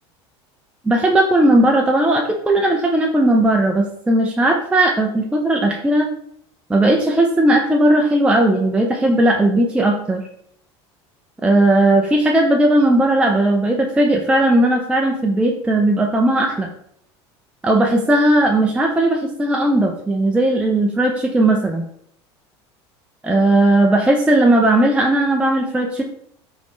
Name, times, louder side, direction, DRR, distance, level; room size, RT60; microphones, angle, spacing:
voice 1, 0.8-6.1 6.7-10.3 11.4-16.7 17.6-21.8 23.2-26.0, right 1 dB, 10° right, 0 dB, 0.4 m, -16 dB
3.4 x 2.7 x 3.1 m, 0.67 s
hypercardioid pair, 90°, 14 cm